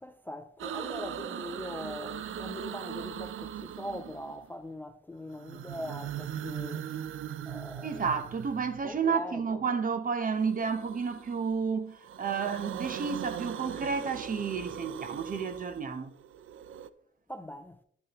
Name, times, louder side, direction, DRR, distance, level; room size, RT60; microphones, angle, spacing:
voice 1, 0.0-6.9 7.5-8.1 8.8-9.6 17.3-17.8, left 1 dB, 10° left, 0.3 m, -41 dB
sound 1, 0.6-4.5 5.3-9.0 10.4-11.5 11.9-16.9, right 10 dB, 80° right, 0.5 m, -40 dB
voice 2, 7.8-16.1, right 5 dB, 40° right, 0.8 m, -31 dB
11.5 x 6.6 x 3.0 m
wide cardioid pair, 145°, 21 cm